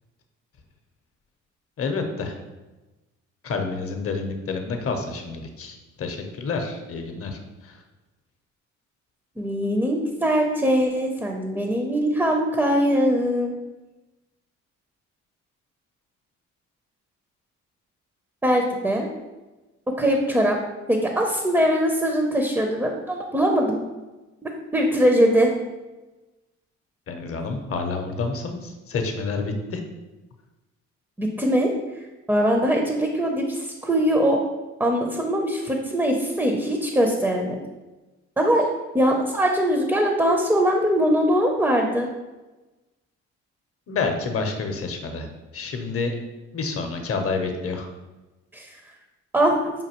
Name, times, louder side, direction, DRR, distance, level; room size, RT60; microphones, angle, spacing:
voice 1, 1.8-2.4 3.4-7.8 27.1-29.8 43.9-45.3 45.5-46.2 46.5-47.9, left 4 dB, 50° left, 5 dB, 0.6 m, -29 dB
voice 2, 9.4-13.5 18.4-19.1 19.9-20.6 20.9-23.8 24.4-25.5 31.2-31.7 32.3-34.4 34.8-37.6 38.4-38.6 38.9-42.1 48.5-48.7 49.3-49.6, equal, 5° right, 2 dB, 0.4 m, -21 dB
5.1 x 2.6 x 2.9 m, 1.1 s
cardioid pair, 90°, 30 cm